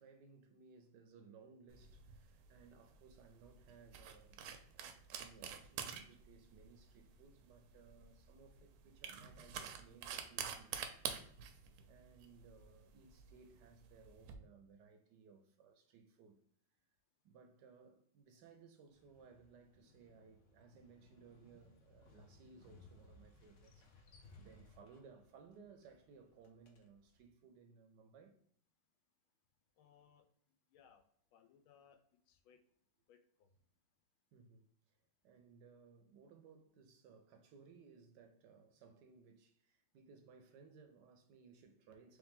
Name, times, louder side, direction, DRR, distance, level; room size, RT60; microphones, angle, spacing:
voice 1, 0.0-4.5 5.1-11.3 11.9-16.4 17.2-24.1 24.4-28.4 34.3-42.2, right 5 dB, 75° right, 1.0 m, -62 dB
sound 1, 1.7-14.3, right 8 dB, 90° right, 1.5 m, -48 dB
Motorcycle, 18.9-27.3, left 2 dB, 70° left, 0.7 m, -64 dB
voice 2, 29.8-30.3 30.7-31.0 31.3-32.0 32.3-32.6 33.1-33.5, left 8 dB, 85° left, 1.5 m, -66 dB
3.7 x 3.2 x 3.5 m
omnidirectional pair, 2.3 m